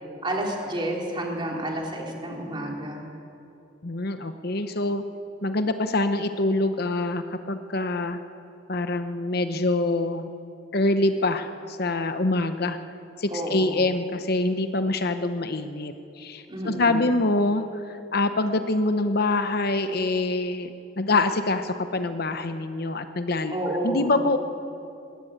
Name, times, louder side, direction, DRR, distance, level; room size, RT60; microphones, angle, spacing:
voice 1, 0.2-3.0 13.3-13.9 16.5-17.1 23.5-24.2, right 1 dB, 25° right, -1 dB, 3.4 m, -30 dB
voice 2, 3.8-5.0 5.4-8.2 8.7-10.3 10.7-12.8 13.2-23.5 23.8-24.4, left 2 dB, 55° left, 8 dB, 1.0 m, -25 dB
20.5 x 17.0 x 8.8 m, 2.7 s
head